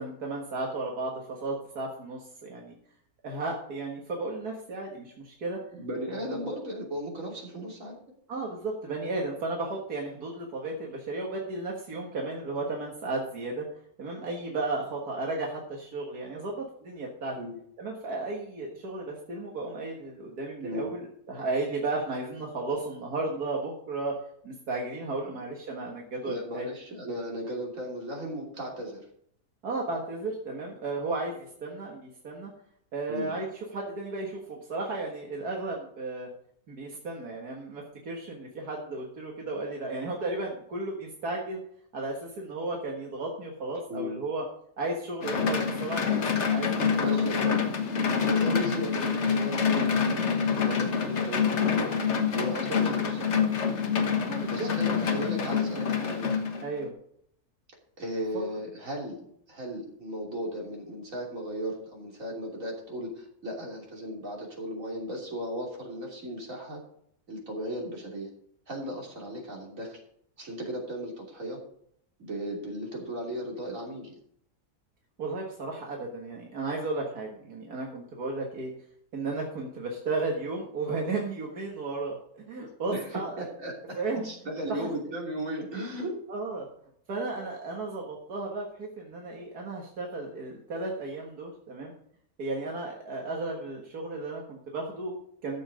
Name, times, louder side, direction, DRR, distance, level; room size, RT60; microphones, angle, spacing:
voice 1, 0.0-2.7 3.2-5.6 6.1-6.6 8.3-13.7 14.0-17.4 17.8-24.1 24.4-26.7 29.6-32.5 32.9-36.3 36.7-41.6 41.9-44.4 44.8-47.6 54.2-55.1 56.6-56.9 75.2-78.7 79.1-83.5 83.9-84.3 84.7-84.9 86.3-86.7 87.1-91.9 92.4-95.6, right 2 dB, 80° right, -1 dB, 2.2 m, -34 dB
voice 2, 5.7-8.0 17.4-17.6 20.6-20.9 25.3-25.4 26.3-29.0 33.1-33.3 43.9-44.2 46.7-47.5 47.8-51.9 52.3-53.5 54.5-56.4 58.0-66.8 67.3-68.3 68.7-70.0 70.4-71.6 72.2-74.1 82.9-86.1, equal, 60° right, -1 dB, 3.5 m, -36 dB
sound 1, 45.2-56.9, left 6 dB, 50° left, 1.5 m, -26 dB
13.0 x 7.2 x 5.1 m, 0.67 s
omnidirectional pair, 1.6 m